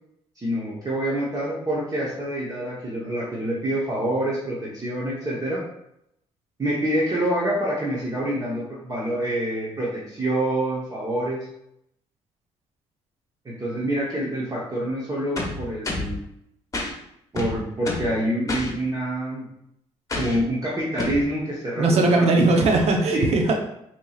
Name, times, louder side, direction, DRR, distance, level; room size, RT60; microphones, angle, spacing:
voice 1, 0.4-5.6 6.6-11.5 13.4-16.2 17.3-19.5 20.2-22.7 23.1-23.3, right 1 dB, 30° right, -6 dB, 1.0 m, -26 dB
sound 1, 15.4-16.2 16.7-16.9 17.4-18.1 18.5-18.7 20.1-20.4 21.0-21.2, left 2 dB, 30° left, 0.9 m, -29 dB
voice 2, 21.8-23.5, right 2 dB, 60° right, 3 dB, 0.8 m, -19 dB
4.5 x 2.9 x 2.4 m, 0.78 s
cardioid pair, 80°, 12 cm